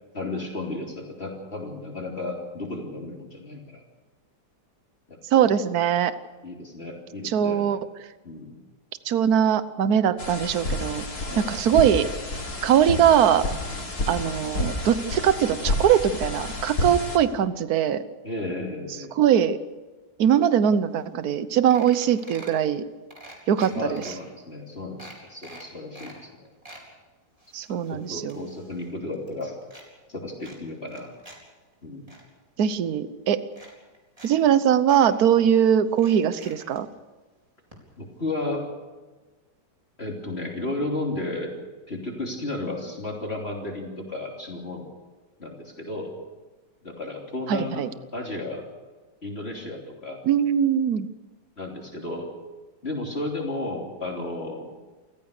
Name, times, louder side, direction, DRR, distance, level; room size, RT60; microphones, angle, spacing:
voice 1, 0.1-3.8 5.1-5.5 6.4-7.7 8.2-8.6 11.2-11.6 13.7-13.9 18.2-19.1 23.7-26.3 27.9-29.6 30.1-31.1 31.8-32.1 38.0-38.7 40.0-41.5 41.9-44.8 45.4-46.1 46.8-47.8 48.1-48.6 49.2-50.2 51.6-52.3 52.8-54.7, left 2 dB, 35° left, 0 dB, 3.5 m, -33 dB
voice 2, 5.3-6.1 7.2-7.8 9.0-11.0 11.4-12.1 12.6-13.5 14.1-18.0 19.1-19.6 20.2-22.8 23.5-24.0 27.5-28.4 32.6-33.4 34.2-36.9 47.5-47.9 50.3-51.1, right 9 dB, 65° right, 13 dB, 1.4 m, -21 dB
sound 1, 10.2-17.2, left 2 dB, 60° left, 3.6 m, -30 dB
sound 2, 21.0-21.1 21.3-21.4 21.7-22.6 23.1-24.1 24.6-24.7 25.0-26.2 26.4-26.9 27.4-28.9 29.1-29.9 30.4-31.4 31.7-32.2 33.0-33.1 33.5-34.3 34.5-34.6 34.9-35.0 35.9-36.8 37.7-37.8 38.1-38.2, right 1 dB, 20° right, 4.4 m, -46 dB
28.5 x 15.0 x 6.7 m, 1.3 s
omnidirectional pair, 1.8 m